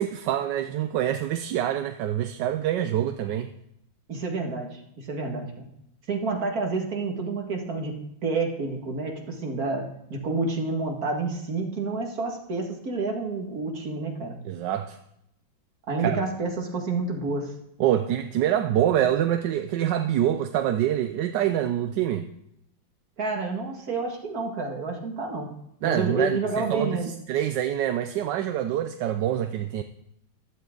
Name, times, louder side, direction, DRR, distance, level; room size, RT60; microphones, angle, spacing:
voice 1, 0.0-3.5 14.4-15.0 16.0-16.2 17.8-22.3 25.8-27.0 27.3-29.8, right 11 dB, 70° right, 8 dB, 1.2 m, -25 dB
voice 2, 4.1-5.7 6.1-8.0 8.2-14.4 15.9-17.5 23.2-25.5 25.8-27.1, right 3 dB, 45° right, 1 dB, 2.4 m, -29 dB
14.5 x 12.5 x 3.9 m, 0.78 s
omnidirectional pair, 2.2 m